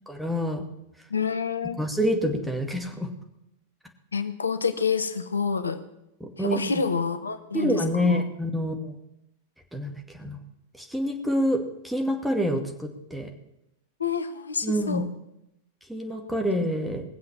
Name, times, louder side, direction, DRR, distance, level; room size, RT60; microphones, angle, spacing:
voice 1, 0.1-0.6 1.8-3.1 6.4-6.7 7.5-9.0 9.7-9.9 10.2-10.4 10.8-13.3 14.6-15.0 15.9-17.0, equal, 5° right, 2 dB, 2.3 m, -27 dB
voice 2, 1.1-1.8 4.1-5.8 6.4-8.2 14.0-15.1, left 5 dB, 75° left, 11 dB, 0.9 m, -28 dB
20.0 x 7.6 x 7.4 m, 0.85 s
figure-of-eight pair, 90°, 0 cm